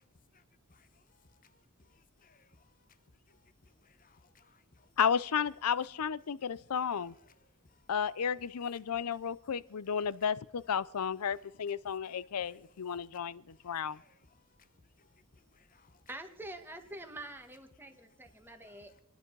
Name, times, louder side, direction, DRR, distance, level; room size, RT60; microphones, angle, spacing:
voice 1, 3.8-4.6 13.9-14.2 15.5-15.9 18.7-19.0, left 5 dB, 40° left, 0.9 m, -65 dB
voice 2, 5.0-7.1 7.9-14.0, left 7 dB, 90° left, 0.5 m, -33 dB
voice 3, 16.1-18.9, right 1 dB, 10° right, 1.4 m, -46 dB
28.0 x 10.5 x 4.6 m
head